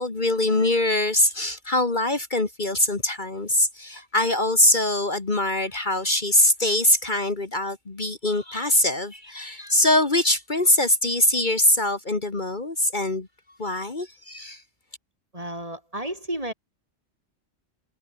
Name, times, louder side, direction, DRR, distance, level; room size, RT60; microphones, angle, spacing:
voice 1, 0.0-13.3 13.6-14.6, left 1 dB, 40° left, 2.1 m, -23 dB
voice 2, 15.3-16.5, right 1 dB, 30° right, 5.6 m, -32 dB
omnidirectional pair, 1.3 m